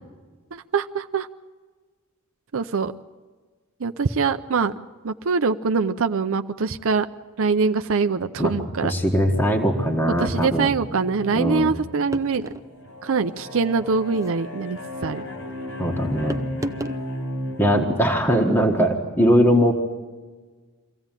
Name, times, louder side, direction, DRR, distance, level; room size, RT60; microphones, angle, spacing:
voice 1, 0.5-1.3 2.5-2.9 3.8-4.7 5.0-7.1 7.4-8.9 10.2-12.5 13.0-15.2, right 4 dB, 65° right, 8 dB, 0.6 m, -23 dB
voice 2, 8.8-10.7 11.3-11.7 15.8-16.4 17.6-19.7, equal, 10° left, 0 dB, 1.5 m, -20 dB
sound 1, 9.2-17.8, equal, 80° left, 5.4 m, -35 dB
sound 2, 12.1-12.7 14.0-14.4 16.3-17.0, equal, 15° right, 0.6 m, -32 dB
24.0 x 15.5 x 9.0 m, 1.4 s
head